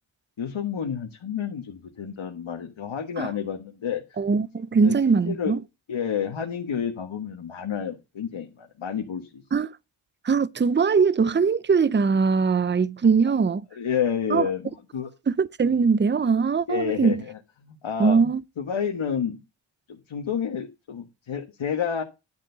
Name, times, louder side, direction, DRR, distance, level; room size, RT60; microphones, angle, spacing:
voice 1, 0.4-4.0 4.8-4.9 5.2-5.5 5.9-9.4 13.7-15.1 16.7-18.2 18.6-19.4 19.9-22.0, left 7 dB, 65° left, 1.6 m, -30 dB
voice 2, 4.2-5.6 9.5-9.7 10.2-13.6 14.3-14.5 15.3-17.1 18.0-18.4, right 5 dB, 20° right, 0.6 m, -21 dB
10.5 x 4.3 x 6.7 m
supercardioid pair, 40°, 49 cm